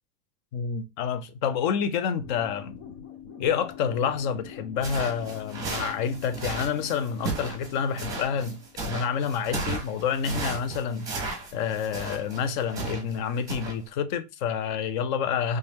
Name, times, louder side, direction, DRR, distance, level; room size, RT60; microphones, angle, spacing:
voice 1, 0.5-2.8 3.4-11.1 11.5-15.6, left 7 dB, 35° left, 0.4 m, -28 dB
sound 1, 2.2-8.8, left 8 dB, 60° left, 1.0 m, -44 dB
sound 2, 4.8-13.2 13.5-13.7, right 3 dB, 10° right, 1.1 m, -34 dB
3.1 x 2.8 x 3.4 m
supercardioid pair, 155°, 43 cm